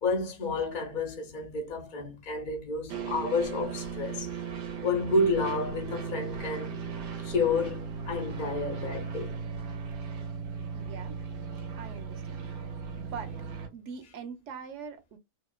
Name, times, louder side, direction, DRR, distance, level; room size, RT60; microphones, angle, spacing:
voice 1, 0.0-4.3 4.8-6.8 7.2-9.4, left 3 dB, 60° left, 0.5 m, -30 dB
sound 1, 2.9-13.7, right 5 dB, 85° right, 1.2 m, -37 dB
voice 2, 10.7-11.2 11.8-12.5 13.0-13.4 13.7-15.2, right 6 dB, 65° right, 0.8 m, -42 dB
2.8 x 2.0 x 2.2 m
omnidirectional pair, 1.6 m